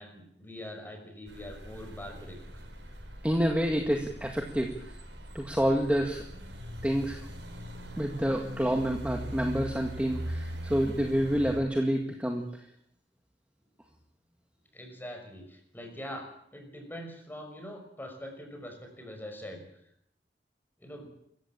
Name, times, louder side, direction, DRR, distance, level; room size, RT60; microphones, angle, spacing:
voice 1, 0.0-2.6 14.7-19.7 20.8-21.1, left 1 dB, 10° left, 4 dB, 5.8 m, -43 dB
sound 1, 1.3-11.6, equal, 75° right, 5.5 m, -41 dB
voice 2, 3.2-4.7 5.3-6.2 6.8-7.2 8.0-12.4, equal, 5° right, 2 dB, 2.0 m, -28 dB
26.0 x 15.0 x 8.8 m, 0.71 s
head